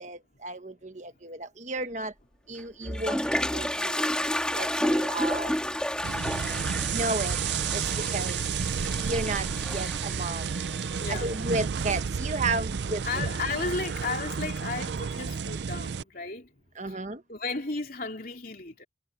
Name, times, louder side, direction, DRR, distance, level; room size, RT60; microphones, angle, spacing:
voice 1, 0.0-2.1 2.5-3.2 3.5-4.1 4.5-5.5 6.9-7.4 7.7-7.8 8.1-8.4 9.0-9.5 9.7-10.5 11.1-13.3 16.8-17.2, right 3 dB, 40° right, 1.5 m, -33 dB
voice 2, 0.8-1.1 2.5-2.7 10.8-11.3 12.9-17.0 17.3-18.8, left 4 dB, 50° left, 3.1 m, -36 dB
Toilet flush, 2.6-11.5, equal, 5° left, 2.9 m, -31 dB
sound 1, 6.0-16.0, right 6 dB, 70° right, 0.5 m, -31 dB
head